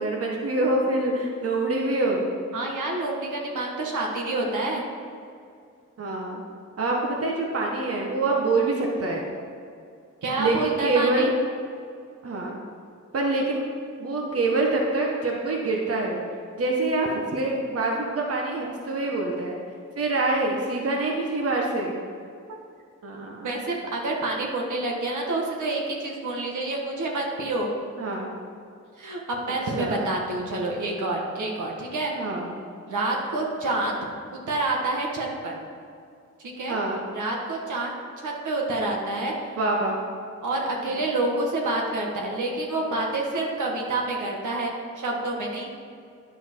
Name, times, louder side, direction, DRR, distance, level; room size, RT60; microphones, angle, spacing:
voice 1, 0.0-2.3 6.0-6.4 6.8-9.2 10.4-11.3 12.2-12.6 13.1-13.6 14.0-16.2 16.6-19.5 19.9-22.0 23.0-23.5 28.0-28.3 29.7-30.1 32.1-32.5 36.7-37.0 39.6-39.9 40.8-41.0, right 2 dB, 50° right, -1 dB, 1.3 m, -25 dB
voice 2, 2.5-4.8 10.2-11.3 23.4-27.7 29.0-32.1 32.9-34.0 34.5-35.5 36.6-36.8 37.1-37.9 38.2-39.5 40.4-45.7, right 2 dB, 75° right, -1 dB, 1.6 m, -28 dB
9.9 x 5.4 x 4.6 m, 2.4 s
cardioid pair, 65°, 31 cm